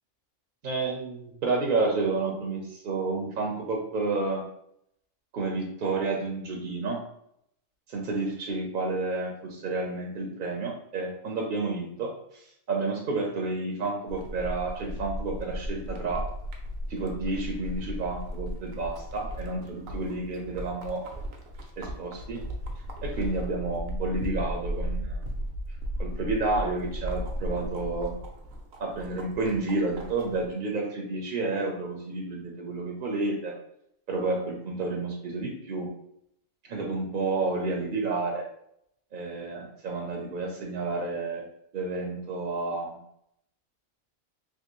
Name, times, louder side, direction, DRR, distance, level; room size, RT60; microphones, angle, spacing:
voice 1, 0.6-4.4 5.3-7.0 7.9-16.3 16.9-21.0 21.8-22.4 23.0-25.2 26.0-28.1 28.8-33.6 34.1-35.9 36.6-38.4 39.1-41.4 41.7-43.0, right 3 dB, 60° right, 0 dB, 0.6 m, -30 dB
sound 1, 14.1-30.5, equal, 90° right, 1.0 m, -36 dB
3.3 x 2.6 x 2.9 m, 0.74 s
omnidirectional pair, 1.3 m